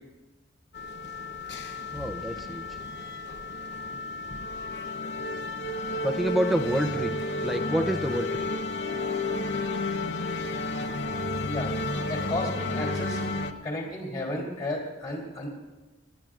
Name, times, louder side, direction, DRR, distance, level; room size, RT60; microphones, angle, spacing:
sound 1, 0.7-13.5, left 2 dB, 60° left, 0.8 m, -32 dB
voice 1, 1.9-2.8 6.0-8.5, equal, ahead, 4 dB, 0.5 m, -28 dB
voice 2, 12.1-13.2 13.6-15.5, left 1 dB, 35° left, -3 dB, 3.0 m, -33 dB
27.5 x 10.5 x 2.5 m, 1.2 s
head